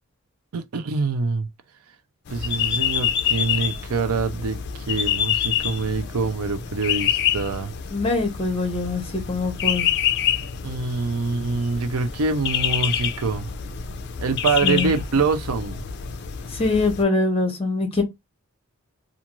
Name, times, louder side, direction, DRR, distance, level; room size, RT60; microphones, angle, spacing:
voice 1, 0.5-1.5 2.3-7.7 10.6-13.5 14.2-15.8, right 4 dB, 90° right, 0.5 m, -25 dB
sound 1, 2.3-17.0, left 9 dB, 50° left, 0.4 m, -27 dB
voice 2, 7.9-9.9 14.6-15.0 16.5-18.0, left 3 dB, 25° left, 0.7 m, -23 dB
2.4 x 2.4 x 2.9 m
head